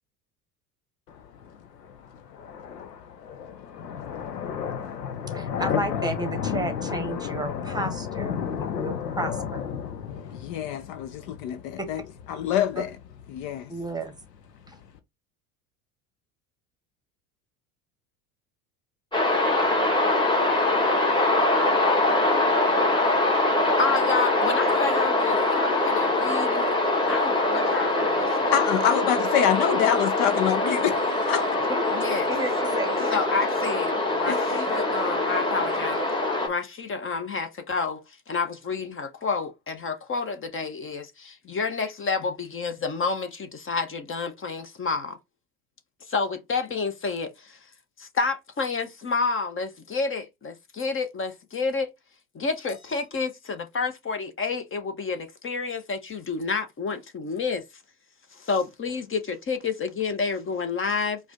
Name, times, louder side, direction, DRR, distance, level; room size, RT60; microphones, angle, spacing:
sound 1, 1.1-15.0, left 8 dB, 90° left, 0.7 m, -33 dB
voice 1, 5.3-9.6 11.8-11.9 13.7-14.1 14.7-14.8 31.7-31.8 32.3-33.1, right 2 dB, 10° right, 1.1 m, -32 dB
voice 2, 10.4-12.0 12.3-12.9 13.3-13.7 28.5-31.5 34.3-34.6, left 10 dB, 55° left, 0.6 m, -25 dB
sound 2, 19.1-36.5, left 2 dB, 10° left, 1.6 m, -23 dB
voice 3, 23.8-26.7 27.1-28.5 31.9-32.3 33.1-36.0 36.4-45.2 46.1-47.6 48.0-51.9 52.3-57.6 58.3-61.2, left 4 dB, 25° left, 0.9 m, -29 dB
4.8 x 2.4 x 3.7 m
hypercardioid pair, 70°, 48 cm